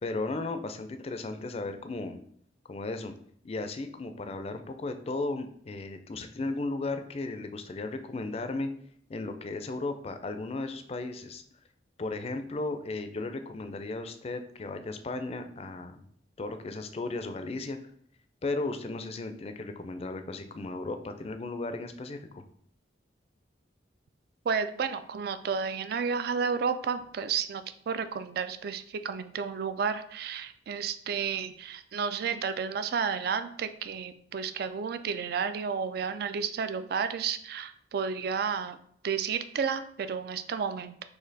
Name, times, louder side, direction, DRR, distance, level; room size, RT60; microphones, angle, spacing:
voice 1, 0.0-2.2 2.7-3.1 3.4-8.7 9.1-11.4 12.0-16.0 16.4-17.8 18.4-22.4, left 2 dB, 35° left, 8 dB, 0.4 m, -35 dB
voice 2, 24.4-38.8 39.0-41.0, right 6 dB, 55° right, 12 dB, 0.3 m, -32 dB
4.1 x 2.8 x 4.0 m, 0.65 s
head